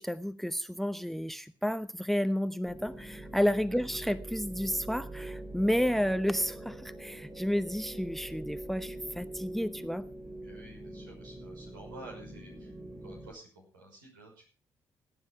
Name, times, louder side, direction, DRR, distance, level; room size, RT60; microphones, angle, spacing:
voice 1, 0.0-10.0, equal, ahead, 15 dB, 0.9 m, -31 dB
sound 1, 2.6-13.3, right 2 dB, 30° right, 3.8 m, -44 dB
voice 2, 10.4-12.7 13.0-14.5, right 2 dB, 80° right, -1 dB, 5.9 m, -51 dB
18.0 x 9.9 x 4.8 m, 0.37 s
figure-of-eight pair, 40°, 10 cm